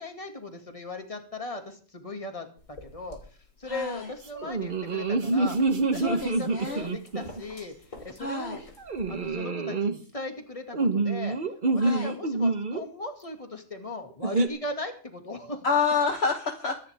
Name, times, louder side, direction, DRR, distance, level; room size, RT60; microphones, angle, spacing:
voice 1, 0.0-3.2 3.6-7.8 8.0-8.7 9.1-11.4 11.7-15.7, left 2 dB, 25° left, 5 dB, 2.4 m, -38 dB
sound 1, 2.6-9.3, left 2 dB, 70° left, 3.4 m, -50 dB
voice 2, 3.7-4.1 6.0-6.9 8.2-8.6 11.8-12.1 15.6-16.8, left 4 dB, 50° left, 4 dB, 1.5 m, -28 dB
sound 2, 4.4-7.4 8.9-9.9 10.7-12.8 14.2-14.5, right 3 dB, 40° right, 1.3 m, -26 dB
24.0 x 10.5 x 3.6 m, 0.40 s
omnidirectional pair, 1.4 m